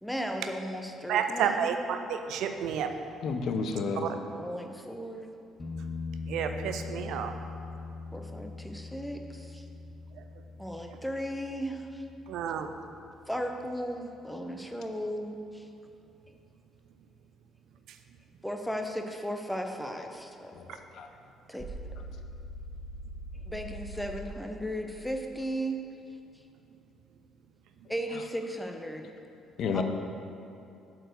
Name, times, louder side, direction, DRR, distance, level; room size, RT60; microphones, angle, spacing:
voice 1, 0.0-1.7 4.3-5.3 8.1-9.7 10.6-12.0 13.3-15.7 18.4-20.6 21.5-21.7 23.5-25.8 27.9-29.1 29.6-29.8, equal, 5° left, 4 dB, 0.8 m, -36 dB
voice 2, 1.1-2.9 4.0-4.1 6.3-7.3 12.3-12.7, right 7 dB, 60° right, 7 dB, 0.4 m, -30 dB
voice 3, 3.2-4.1 20.5-21.1 29.6-29.8, left 5 dB, 55° left, 6 dB, 0.6 m, -31 dB
sound 1, 5.6-13.2 16.2-16.3, left 4 dB, 35° left, 1.0 m, -42 dB
sound 2, 21.6-24.2, right 1 dB, 15° right, 1.6 m, -41 dB
7.5 x 4.6 x 6.5 m, 2.7 s
figure-of-eight pair, 45°, 0 cm